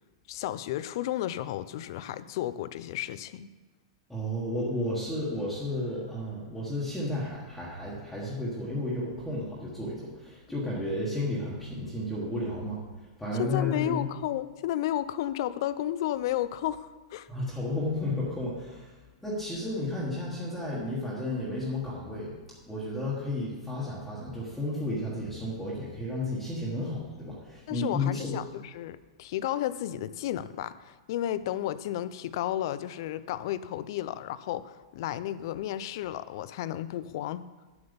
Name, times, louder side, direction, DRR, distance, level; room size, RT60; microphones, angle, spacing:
voice 1, 0.3-3.5 13.4-17.3 27.7-37.4, left 12 dB, 50° left, 15 dB, 0.5 m, -32 dB
voice 2, 4.1-14.1 17.3-18.9 19.2-22.4 22.7-28.4, left 1 dB, ahead, -8 dB, 1.5 m, -32 dB
8.6 x 7.9 x 5.3 m, 1.2 s
supercardioid pair, 165°, 3 cm